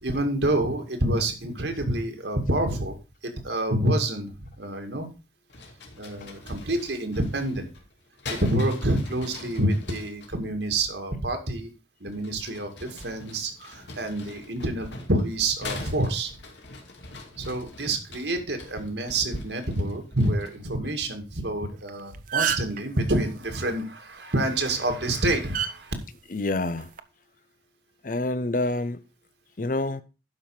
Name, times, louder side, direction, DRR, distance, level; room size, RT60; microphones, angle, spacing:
voice 1, 0.0-3.0 3.2-5.1 6.0-7.7 8.3-11.7 12.0-16.3 17.3-25.9, right 1 dB, 70° right, 2.1 m, -27 dB
sound 1, 5.5-10.3 12.1-20.7, left 2 dB, 75° left, 2.5 m, -43 dB
sound 2, 21.8-21.9 22.1-22.8 24.5-24.7 25.5-25.7 26.7-27.0, right 8 dB, 45° right, 0.6 m, -26 dB
voice 2, 26.3-26.9 28.0-29.0 29.6-30.0, left 2 dB, 45° left, 0.7 m, -27 dB
11.5 x 5.7 x 4.8 m
head